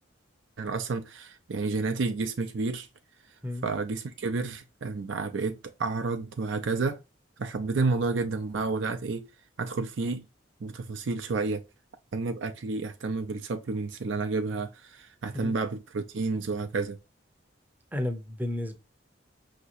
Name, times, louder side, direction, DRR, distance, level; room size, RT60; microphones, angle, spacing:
voice 1, 0.6-2.9 3.6-7.0 7.4-9.2 9.6-10.3 10.6-11.6 12.1-17.0, right 3 dB, 70° right, 0.5 m, -30 dB
voice 2, 17.9-18.8, left 1 dB, 10° right, 0.6 m, -32 dB
5.6 x 2.9 x 2.4 m
head